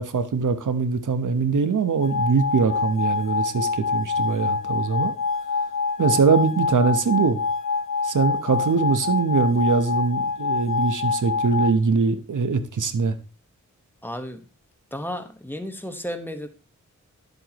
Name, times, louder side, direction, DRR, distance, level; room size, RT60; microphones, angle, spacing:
voice 1, 0.0-5.1 6.0-7.4 8.0-13.1, right 5 dB, 75° right, 1.1 m, -22 dB
sound 1, 2.0-11.7, left 5 dB, 85° left, 1.0 m, -26 dB
voice 2, 14.0-14.4 14.9-16.5, equal, 5° left, 1.4 m, -33 dB
11.0 x 8.0 x 3.1 m
wide cardioid pair, 70°, 31 cm